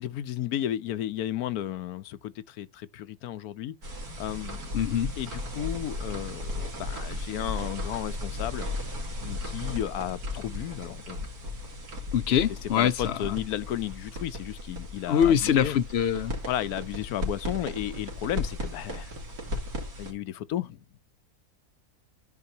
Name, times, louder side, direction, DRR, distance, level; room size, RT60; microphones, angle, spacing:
voice 1, 0.0-2.2 2.6-2.7 2.9-3.7 4.2-4.6 5.2-6.5 6.8-8.7 9.2-11.2 12.6-15.8 16.5-19.1 20.0-20.7, left 12 dB, 85° left, 1.2 m, -33 dB
sound 1, 3.8-20.1, left 2 dB, 90° right, 3.1 m, -36 dB
voice 2, 4.7-5.1 12.1-13.2 15.0-16.3, left 9 dB, 60° left, 0.7 m, -24 dB
13.5 x 4.7 x 2.7 m
omnidirectional pair, 1.6 m